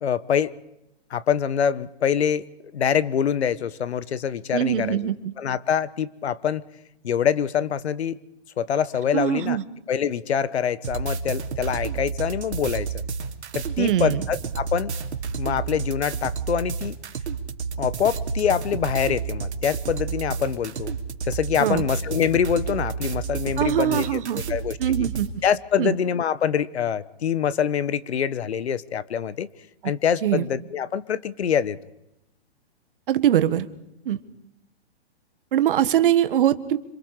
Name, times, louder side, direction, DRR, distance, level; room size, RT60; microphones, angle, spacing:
voice 1, 0.0-0.5 1.1-2.4 2.7-5.1 5.4-6.6 7.0-8.2 8.6-9.6 9.9-13.0 13.5-14.9 15.4-16.9 17.8-20.9 21.2-24.2 24.5-25.1 25.4-29.5 29.8-31.8, left 8 dB, 75° left, 18 dB, 1.3 m, -25 dB
voice 2, 4.5-5.1 9.1-9.6 13.8-14.2 21.6-21.8 23.6-24.4 24.8-25.3 25.8-26.0 30.2-30.4 33.1-33.7 34.0-34.2 35.5-36.8, right 11 dB, 55° right, 12 dB, 1.5 m, -22 dB
sound 1, 10.8-25.3, right 5 dB, 85° right, 2.8 m, -31 dB
26.5 x 26.5 x 5.0 m, 0.87 s
hypercardioid pair, 155°, 33 cm